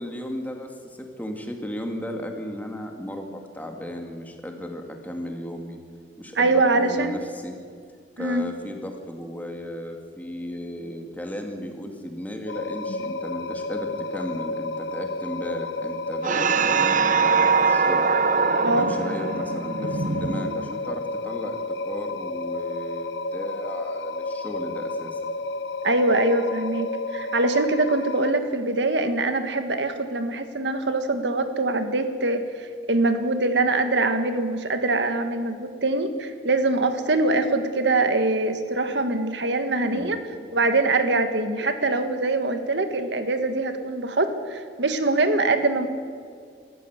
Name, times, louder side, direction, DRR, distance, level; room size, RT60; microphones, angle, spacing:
voice 1, 0.0-5.8 6.2-7.6 8.2-18.0 18.8-25.2 39.9-40.2, equal, 10° left, 3 dB, 2.2 m, -35 dB
voice 2, 6.4-7.2 8.2-8.4 18.6-18.9 25.8-40.2 40.5-45.9, right 2 dB, 80° right, 8 dB, 1.6 m, -23 dB
sound 1, 12.5-28.3, left 2 dB, 75° left, 0.8 m, -31 dB
sound 2, 16.2-21.0, right 5 dB, 45° right, 0.7 m, -23 dB
24.0 x 14.0 x 8.2 m, 2.2 s
head